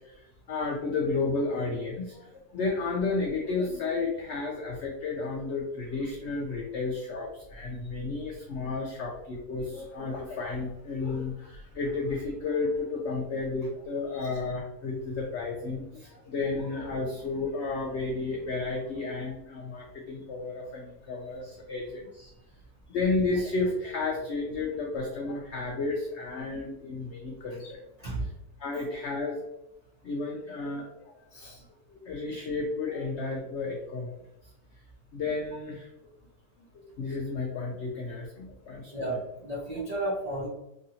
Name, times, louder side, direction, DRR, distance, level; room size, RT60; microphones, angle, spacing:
voice 1, 0.5-2.2 2.5-22.3 22.9-27.8 28.6-29.4 30.0-30.9 32.0-34.1 35.1-35.8 37.0-38.8, left 3 dB, 80° left, 0 dB, 0.6 m, -32 dB
voice 2, 38.9-40.5, right 1 dB, 65° right, -5 dB, 0.4 m, -33 dB
3.1 x 2.7 x 2.7 m, 0.84 s
omnidirectional pair, 1.7 m